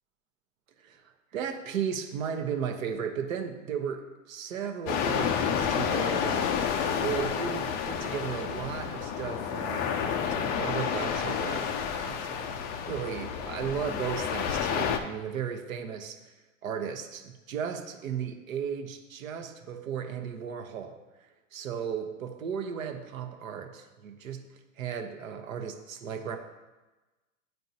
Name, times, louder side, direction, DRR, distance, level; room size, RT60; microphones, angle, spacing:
voice 1, 0.8-6.5 7.0-12.6 12.9-16.3 16.6-21.0 21.5-24.4 24.8-26.4, right 7 dB, 75° right, 6 dB, 1.0 m, -35 dB
sound 1, 4.9-15.0, left 7 dB, 25° left, 0.3 m, -30 dB
9.2 x 4.5 x 2.7 m, 1.1 s
hypercardioid pair, 100°, 41 cm